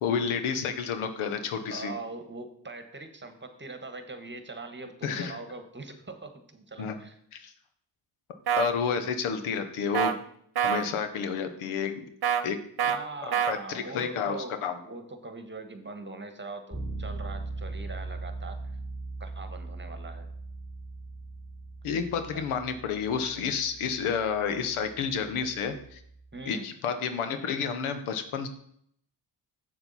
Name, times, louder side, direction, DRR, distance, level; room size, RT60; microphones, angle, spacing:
voice 1, 0.0-1.9 5.0-5.3 6.8-7.0 7.3-7.5 8.6-10.2 10.6-12.0 12.4-12.6 13.5-14.8 21.8-26.0 26.5-28.5, left 6 dB, 90° left, 8 dB, 1.0 m, -30 dB
voice 2, 1.7-7.2 12.8-14.6 14.8-18.6 19.2-20.3 22.3-22.4 26.3-26.7, right 3 dB, 25° right, 7 dB, 1.4 m, -41 dB
sound 1, 8.5-8.7 9.9-10.1 10.6-10.9 12.2-12.4 12.8-13.0 13.3-13.5, right 8 dB, 50° right, 1.0 m, -25 dB
Bass guitar, 16.7-26.4, right 3 dB, 10° left, 2.0 m, -40 dB
7.5 x 7.0 x 4.1 m, 0.67 s
supercardioid pair, 55°, 48 cm